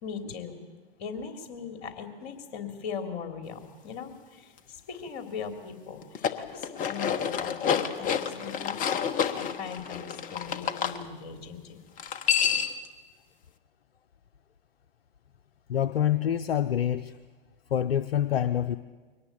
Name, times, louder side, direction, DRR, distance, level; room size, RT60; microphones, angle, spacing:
voice 1, 0.0-0.7 1.0-8.9 9.3-11.8, left 6 dB, 50° left, 7 dB, 3.4 m, -39 dB
sound 1, 6.0-11.0 12.0-12.9, left 7 dB, 25° left, 1.3 m, -29 dB
voice 2, 15.7-17.1 17.7-18.8, left 10 dB, 75° left, 10 dB, 0.8 m, -26 dB
23.5 x 18.5 x 8.7 m, 1.4 s
hypercardioid pair, 110°, 30 cm